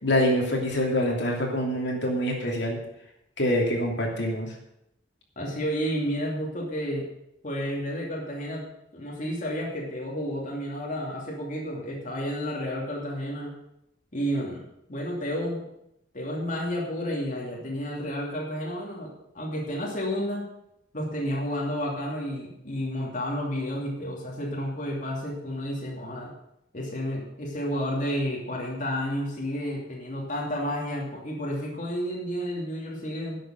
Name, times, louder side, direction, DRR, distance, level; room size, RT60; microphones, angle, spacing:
voice 1, 0.0-2.8 3.4-4.5, equal, 65° left, -1 dB, 3.0 m, -25 dB
voice 2, 5.4-7.1 7.4-8.6 8.9-13.5 14.1-14.6 14.9-15.7 16.1-20.5 20.9-26.3 26.7-33.4, equal, 40° left, -2 dB, 2.9 m, -31 dB
11.5 x 7.7 x 7.8 m, 0.80 s
head